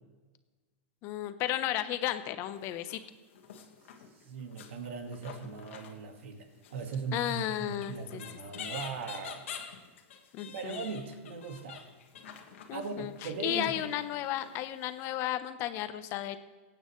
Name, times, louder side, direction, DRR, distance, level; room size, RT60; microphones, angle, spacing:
voice 1, 1.0-3.0 7.1-8.2 10.3-10.9 12.7-16.4, left 12 dB, 40° left, 10 dB, 0.9 m, -34 dB
sound 1, 2.5-3.0 3.3-6.4 6.6-14.7 15.1-15.2, left 8 dB, 85° left, 1.8 m, -47 dB
voice 2, 4.2-9.4 10.5-11.9 12.7-13.9, right 5 dB, 80° right, 5 dB, 1.8 m, -39 dB
24.0 x 8.9 x 3.2 m, 1.3 s
supercardioid pair, 140°, 7 cm